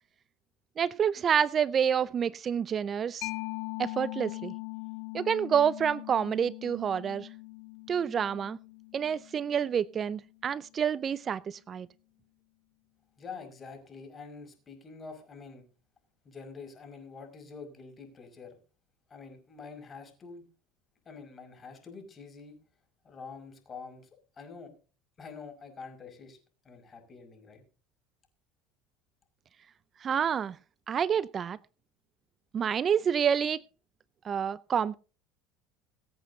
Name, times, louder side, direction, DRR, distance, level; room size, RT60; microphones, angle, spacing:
voice 1, 0.8-3.3 3.8-4.5 5.1-7.3 7.9-8.6 8.9-11.9 30.0-30.6 30.9-31.6 32.5-33.6 34.2-34.9, right 8 dB, 35° right, 0.5 m, -28 dB
Mallet percussion, 3.2-10.5, left 26 dB, 70° left, 1.1 m, -41 dB
voice 2, 13.2-15.7 16.2-18.6 19.1-20.4 21.1-22.6 23.0-24.1 24.4-24.7 25.2-26.4 26.6-27.6, left 5 dB, 30° left, 5.5 m, -46 dB
23.0 x 8.3 x 2.7 m
supercardioid pair, 90°, 0 cm